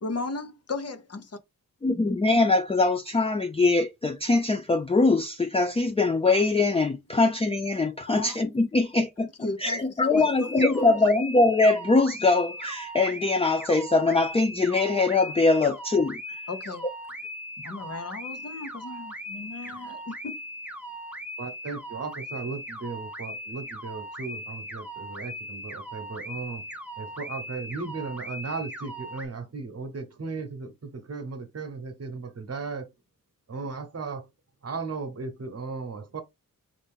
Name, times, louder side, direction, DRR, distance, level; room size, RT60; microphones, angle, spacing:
voice 1, 0.0-1.2 8.1-8.4 9.4-9.8 10.1-10.9 16.5-16.8 17.6-20.4, left 3 dB, 45° left, 0.9 m, -36 dB
voice 2, 1.8-16.2, left 3 dB, 15° left, 0.4 m, -22 dB
sound 1, 10.1-29.3, equal, 5° right, 0.9 m, -39 dB
voice 3, 21.4-26.6 27.0-32.9 33.5-34.3 34.6-36.2, right 4 dB, 45° right, 1.1 m, -36 dB
5.4 x 2.6 x 3.6 m
wide cardioid pair, 155°, 34 cm